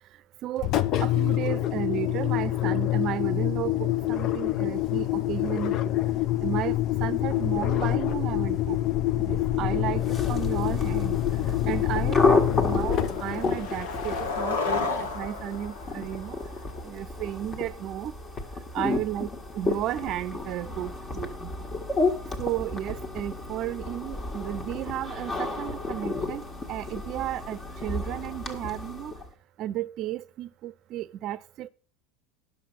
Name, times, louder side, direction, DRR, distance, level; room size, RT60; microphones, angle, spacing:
Engine, 0.6-14.6, left 13 dB, 50° left, 0.7 m, -26 dB
voice 1, 1.0-6.0 6.4-8.8 9.2-11.2 11.6-16.4 16.8-18.1 18.7-21.7 22.4-29.1 29.6-31.7, right 12 dB, 50° right, 0.6 m, -33 dB
sound 1, 10.0-29.3, left 3 dB, 30° left, 1.8 m, -31 dB
Skateboard, 11.0-11.1 11.5-11.8 12.1-16.8, left 4 dB, 85° left, 1.8 m, -33 dB
10.0 x 6.7 x 5.8 m
hypercardioid pair, 100°, 0 cm